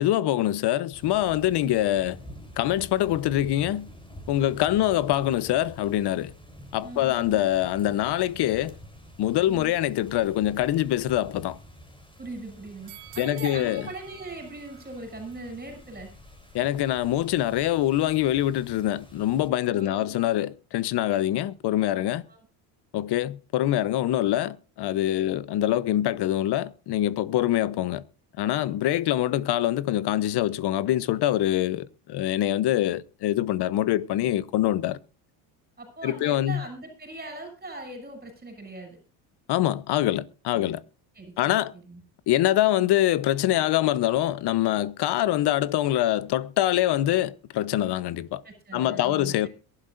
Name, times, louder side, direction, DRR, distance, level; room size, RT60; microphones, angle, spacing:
voice 1, 0.0-2.2 2.6-3.9 4.3-6.3 6.7-8.8 9.2-11.6 13.2-13.8 16.5-22.2 22.9-28.0 28.4-35.0 36.0-36.6 39.5-40.8 41.4-41.7 42.3-48.4 48.7-49.5, left 13 dB, 50° left, 1.0 m, -24 dB
sound 1, 0.9-19.5, left 1 dB, 10° left, 3.7 m, -47 dB
voice 2, 6.8-7.4 9.4-9.7 12.2-16.1 19.7-20.3 22.3-22.4 35.8-39.0 40.5-40.7 41.1-41.6 41.8-42.0 48.4-49.5, right 2 dB, 20° right, 6.8 m, -40 dB
sound 2, 12.9-16.0 16.4-16.5, right 21 dB, 90° right, 1.3 m, -48 dB
22.5 x 12.0 x 2.6 m
cardioid pair, 115°, 50 cm